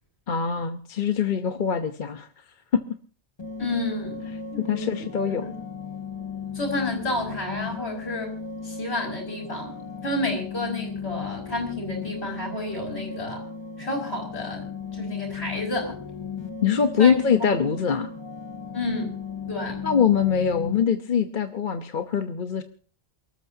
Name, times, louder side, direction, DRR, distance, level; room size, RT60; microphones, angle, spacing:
voice 1, 0.3-2.3 2.7-2.8 4.6-5.5 16.6-18.1 19.8-22.6, left 7 dB, 50° left, 8 dB, 1.0 m, -23 dB
sound 1, 3.4-20.8, left 5 dB, 25° left, 0.7 m, -36 dB
voice 2, 3.6-5.5 6.5-8.4 8.6-13.4 13.8-14.7 14.9-16.0 17.0-17.1 18.7-19.1 19.5-19.8, left 2 dB, 65° left, 2 dB, 6.2 m, -30 dB
28.5 x 13.5 x 2.8 m, 0.42 s
omnidirectional pair, 1.1 m